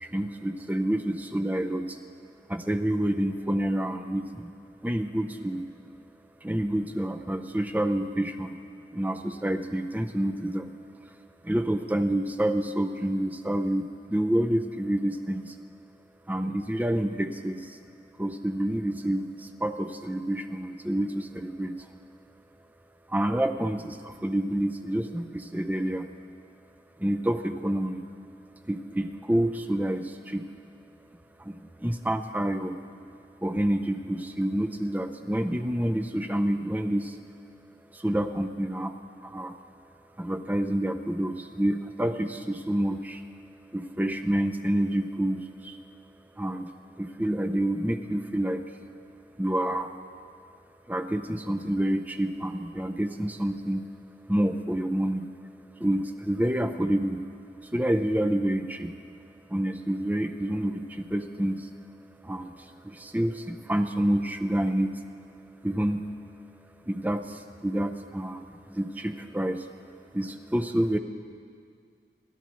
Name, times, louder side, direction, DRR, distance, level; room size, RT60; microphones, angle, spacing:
voice 1, 0.0-2.0 2.5-4.5 4.8-5.6 6.4-8.6 8.9-10.7 11.4-15.5 16.3-17.8 18.2-21.7 23.1-26.1 27.0-28.1 28.7-30.4 31.4-32.8 33.4-37.2 37.9-38.9 39.2-39.6 40.2-43.2 43.7-45.8 46.4-46.7 47.0-48.6 49.4-49.9 50.9-53.9 54.3-55.3 55.8-57.3 57.6-58.9 59.5-61.7 62.2-65.0 65.6-66.0 66.9-69.7 70.1-71.0, right 1 dB, 10° right, 7 dB, 0.6 m, -28 dB
26.5 x 13.0 x 3.1 m, 2.2 s
head